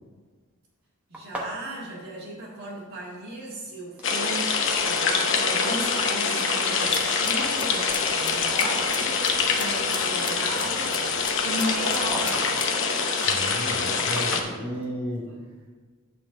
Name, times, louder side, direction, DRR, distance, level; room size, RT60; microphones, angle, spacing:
sound 1, 1.1-3.1 3.4-4.2 4.8-5.4 5.7-5.9 6.6-6.7 7.2-8.7 9.1-9.2 11.5-14.9, right 1 dB, 5° right, 1.0 m, -39 dB
voice 1, 1.1-11.0 11.4-12.5 15.2-15.4, right 1 dB, 50° right, -7 dB, 1.9 m, -36 dB
sound 2, 4.0-14.4, left 5 dB, 60° left, 0.8 m, -25 dB
sound 3, 6.8-12.7, left 6 dB, 20° left, 0.4 m, -39 dB
voice 2, 13.3-15.3, equal, 70° right, -3 dB, 2.1 m, -33 dB
8.5 x 3.8 x 6.1 m, 1.4 s
head